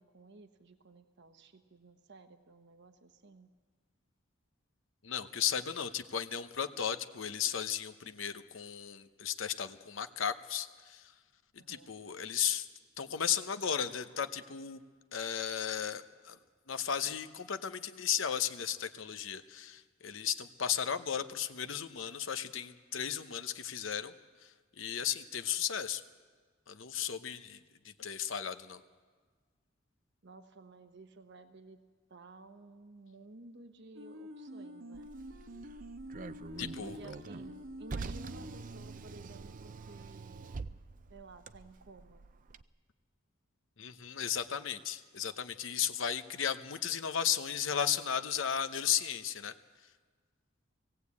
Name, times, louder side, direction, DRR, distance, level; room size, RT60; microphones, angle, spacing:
voice 1, 0.0-3.5 11.6-11.9 30.2-35.1 36.8-40.6 41.1-42.2, right 3 dB, 60° right, 7 dB, 1.0 m, -54 dB
voice 2, 5.0-11.1 11.5-12.7 13.0-14.8 15.1-16.4 16.7-24.1 24.8-26.0 26.7-27.6 27.8-28.8 36.6-37.0 43.8-49.5, left 8 dB, 75° left, 10 dB, 0.9 m, -35 dB
sound 1, 33.9-39.2, equal, 80° right, 1.4 m, -47 dB
Car, 34.9-42.6, right 4 dB, 45° right, 0.5 m, -46 dB
19.0 x 16.5 x 8.5 m, 1.5 s
head